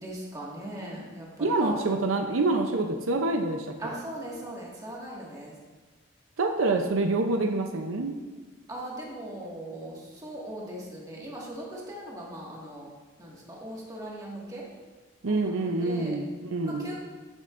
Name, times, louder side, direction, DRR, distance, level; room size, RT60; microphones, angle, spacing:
voice 1, 0.0-1.8 3.8-5.5 8.7-12.9 13.2-14.7 15.2-16.2 16.6-17.0, right 1 dB, 20° right, -4 dB, 1.8 m, -39 dB
voice 2, 1.4-3.7 6.4-8.2 15.2-17.0, right 2 dB, 80° right, 4 dB, 0.6 m, -26 dB
13.0 x 7.4 x 2.6 m, 1.3 s
head